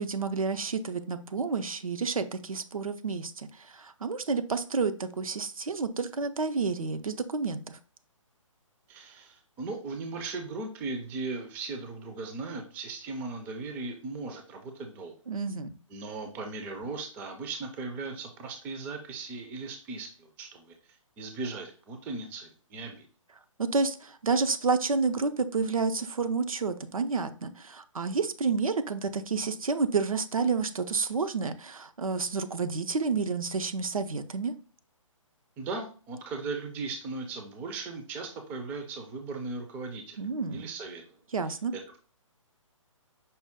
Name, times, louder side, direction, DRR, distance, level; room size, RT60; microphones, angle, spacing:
voice 1, 0.0-7.8 15.3-15.7 23.6-34.5 40.2-40.6 41.3-41.7, right 4 dB, 85° right, 9 dB, 0.5 m, -30 dB
voice 2, 8.9-15.1 15.9-20.7 21.2-23.1 35.6-40.2 40.5-41.0 41.7-42.0, right 3 dB, 10° right, 5 dB, 0.3 m, -37 dB
5.3 x 2.2 x 3.5 m, 0.39 s
figure-of-eight pair, 135°, 17 cm